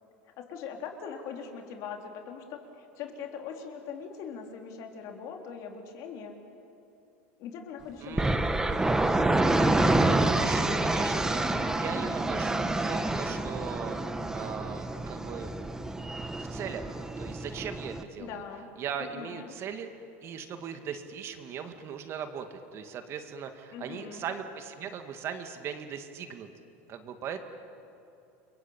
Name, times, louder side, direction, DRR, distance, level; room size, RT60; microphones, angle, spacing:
voice 1, 0.4-6.3 7.4-8.6 18.2-18.7 19.0-19.5 23.7-24.2, left 6 dB, 55° left, 3 dB, 3.9 m, -41 dB
voice 2, 8.0-8.4 10.1-14.0 14.3-15.5 16.5-18.4 18.8-19.9 20.2-26.5 26.9-27.4, right 7 dB, 40° right, 7 dB, 2.1 m, -39 dB
sound 1, 8.2-18.0, right 2 dB, 10° right, 1.4 m, -27 dB
29.5 x 22.5 x 8.9 m, 2.8 s
supercardioid pair, 125°, 6 cm